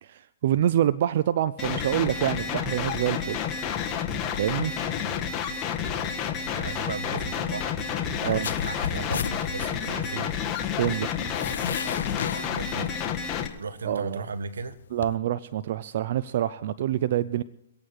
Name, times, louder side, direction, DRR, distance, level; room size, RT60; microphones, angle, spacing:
voice 1, 0.0-3.4 4.4-4.7 8.3-8.5 10.7-11.1 13.8-14.3 14.9-17.4, right 11 dB, 55° right, 14 dB, 0.5 m, -26 dB
sound 1, 1.6-13.5, left 7 dB, 20° left, 1.5 m, -30 dB
voice 2, 6.4-10.3 12.4-13.2 13.6-14.8, right 4 dB, 90° right, 14 dB, 1.3 m, -36 dB
sound 2, 8.4-15.2, left 8 dB, 75° left, 0.5 m, -35 dB
23.5 x 8.7 x 4.7 m, 0.77 s
hypercardioid pair, 140°, 0 cm